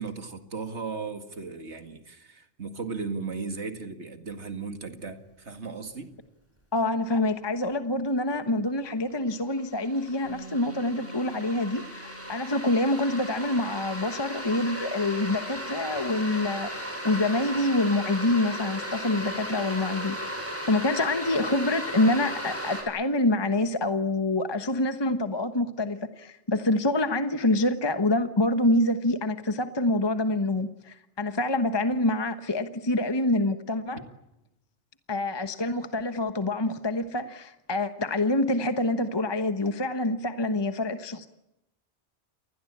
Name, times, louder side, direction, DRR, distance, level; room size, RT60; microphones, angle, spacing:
voice 1, 0.0-6.1, right 4 dB, 75° right, 2.4 m, -36 dB
voice 2, 6.7-16.7 17.0-20.4 20.7-34.0 35.1-41.3, left 2 dB, 25° left, 1.2 m, -26 dB
sound 1, 8.7-8.8 9.1-22.8, equal, 10° right, 7.9 m, -36 dB
Bass guitar, 10.2-16.5, right 2 dB, 75° left, 6.4 m, -49 dB
28.5 x 21.0 x 8.7 m
omnidirectional pair, 1.2 m